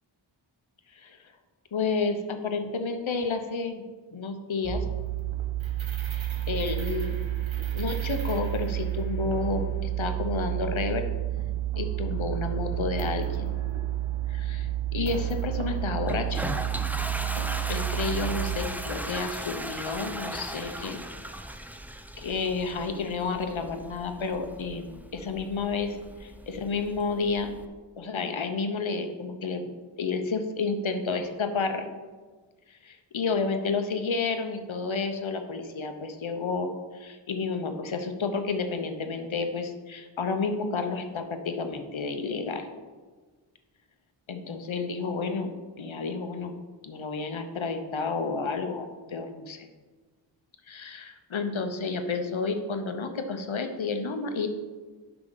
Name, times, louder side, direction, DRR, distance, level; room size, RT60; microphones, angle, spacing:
voice 1, 1.7-3.8 4.1-4.8 6.1-7.2 7.7-11.1 11.8-13.5 14.3-16.4 17.4-21.0 22.2-27.5 28.0-29.7 30.0-31.9 32.7-42.7 44.3-45.5 45.8-46.5 46.8-49.7 50.7-54.5, left 4 dB, 70° left, 6 dB, 0.9 m, -31 dB
sound 1, 4.6-18.6, right 13 dB, 70° right, 1.1 m, -30 dB
Toilet flush, 16.1-27.6, right 1 dB, 5° right, 0.5 m, -38 dB
8.9 x 5.9 x 3.9 m, 1.4 s
wide cardioid pair, 55°, 48 cm